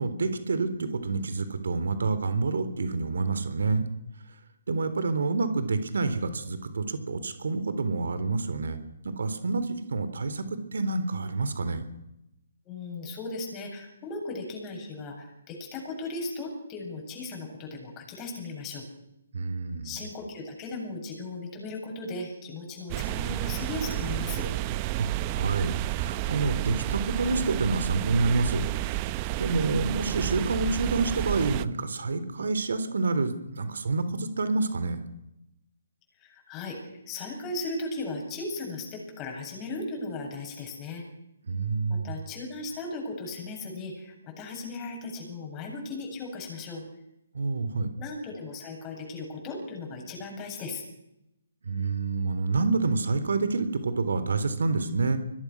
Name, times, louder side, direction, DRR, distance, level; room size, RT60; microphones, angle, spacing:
voice 1, 0.0-3.9 4.7-8.8 9.0-11.8 19.3-20.0 25.0-28.6 29.0-35.0 41.4-42.1 47.3-47.9 51.6-55.2, right 3 dB, 75° right, 11 dB, 3.7 m, -28 dB
voice 2, 12.6-18.9 19.8-24.5 36.2-41.0 41.9-46.8 48.0-50.8, left 2 dB, 20° left, 1 dB, 8.0 m, -37 dB
sound 1, 22.9-31.6, right 15 dB, 25° right, 0.9 m, -31 dB
25.5 x 21.5 x 6.4 m, 0.85 s
hypercardioid pair, 155°, 0 cm